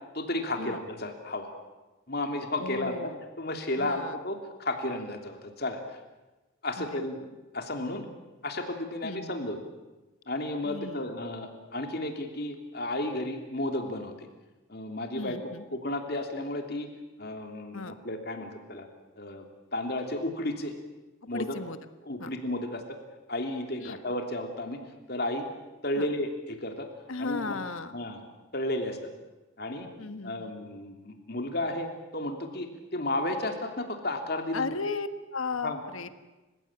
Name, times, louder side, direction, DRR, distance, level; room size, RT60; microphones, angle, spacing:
voice 1, 0.1-1.6 2.1-3.1 3.4-6.0 6.6-8.0 8.4-9.6 10.3-14.3 14.7-15.4 15.7-16.9 17.2-18.9 19.2-19.4 19.7-20.7 21.3-21.5 22.0-23.0 23.3-24.8 25.1-25.5 25.8-26.9 27.2-27.5 27.9-28.2 28.5-29.1 29.6-29.9 30.2-34.7 35.6-35.8, left 1 dB, 50° left, 4 dB, 3.1 m, -33 dB
voice 2, 2.6-3.2 3.8-4.2 6.8-7.0 9.0-9.5 10.6-11.1 15.1-15.6 17.7-18.0 21.2-21.8 22.2-22.3 23.8-24.0 25.9-26.1 27.1-28.0 30.0-30.5 34.5-36.1, left 3 dB, 80° left, 10 dB, 1.5 m, -36 dB
29.5 x 16.0 x 8.9 m, 1.1 s
head